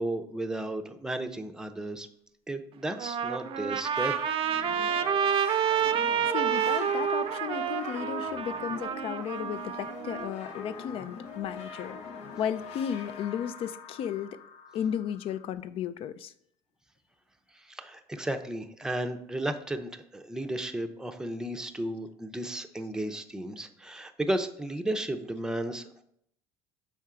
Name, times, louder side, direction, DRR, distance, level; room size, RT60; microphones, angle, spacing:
voice 1, 0.0-2.1 2.5-4.2 17.5-26.0, right 1 dB, 5° right, 7 dB, 0.6 m, -34 dB
Trumpet, 2.8-10.3, right 8 dB, 55° right, 0.5 m, -29 dB
sound 1, 3.9-15.5, left 4 dB, 80° left, 0.8 m, -43 dB
voice 2, 6.3-12.0 12.4-14.4 14.7-16.3, left 9 dB, 55° left, 14 dB, 0.4 m, -34 dB
6.4 x 4.4 x 3.7 m, 0.72 s
supercardioid pair, 100°, 11 cm